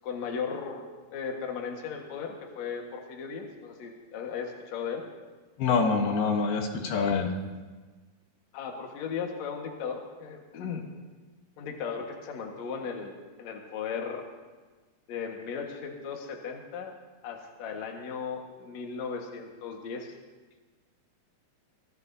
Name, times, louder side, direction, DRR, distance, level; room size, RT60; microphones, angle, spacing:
voice 1, 0.0-5.0 6.9-7.0 8.5-10.9 11.6-14.3 15.1-16.9 17.2-20.1, left 6 dB, 55° left, 2 dB, 2.5 m, -36 dB
voice 2, 5.6-7.3, left 4 dB, 80° left, 3 dB, 3.1 m, -25 dB
24.5 x 18.0 x 2.8 m, 1.3 s
omnidirectional pair, 4.3 m